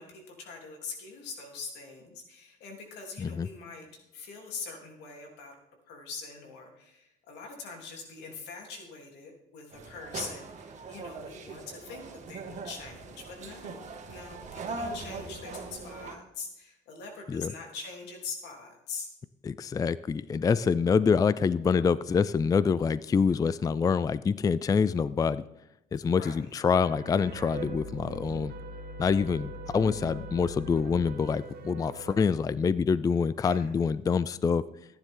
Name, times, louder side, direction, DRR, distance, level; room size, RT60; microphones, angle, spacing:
voice 1, 0.0-3.9 4.1-5.6 5.9-19.1 26.1-26.5 33.4-33.7, left 4 dB, 90° left, 1 dB, 3.5 m, -43 dB
sound 1, 9.7-16.2, right 3 dB, 45° right, 2.1 m, -41 dB
voice 2, 19.4-25.4 25.9-28.5 29.0-34.6, left 5 dB, 20° left, 17 dB, 0.4 m, -26 dB
sound 2, 26.7-32.2, right 2 dB, 70° right, 1.6 m, -41 dB
15.0 x 10.0 x 3.8 m, 0.86 s
cardioid pair, 110°, 17 cm